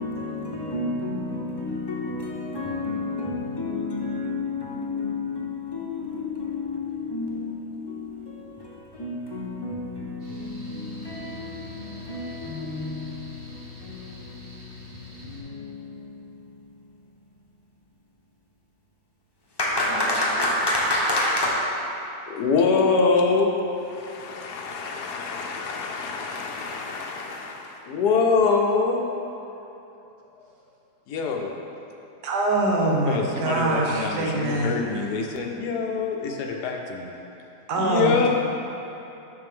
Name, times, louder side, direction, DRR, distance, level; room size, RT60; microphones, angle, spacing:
voice 1, 0.0-16.4 19.6-21.5, left 2 dB, 20° left, -4 dB, 0.7 m, -30 dB
Mechanical fan, 10.2-15.4, left 4 dB, 55° right, 1.6 m, -44 dB
voice 2, 22.3-23.5 23.8-29.1 31.1-31.6 33.1-37.1 37.8-38.3, left 4 dB, 80° left, 1 dB, 1.2 m, -25 dB
voice 3, 32.2-34.7 37.7-38.3, right 2 dB, 75° right, -1 dB, 1.5 m, -23 dB
6.6 x 6.5 x 3.5 m, 2.9 s
omnidirectional pair, 1.7 m